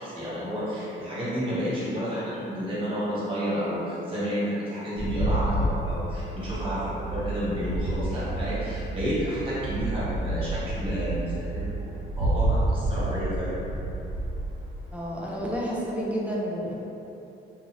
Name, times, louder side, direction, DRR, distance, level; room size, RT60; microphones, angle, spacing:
voice 1, 0.0-13.6, equal, 25° right, -10 dB, 1.4 m, -31 dB
sound 1, 5.0-8.9 9.7-16.0, right 1 dB, 45° right, 1.1 m, -30 dB
sound 2, 6.4-13.5, right 4 dB, 50° left, 0.7 m, -34 dB
voice 2, 14.9-16.8, equal, 5° right, -6 dB, 0.4 m, -30 dB
2.7 x 2.3 x 3.1 m, 2.9 s
cardioid pair, 90°, 20 cm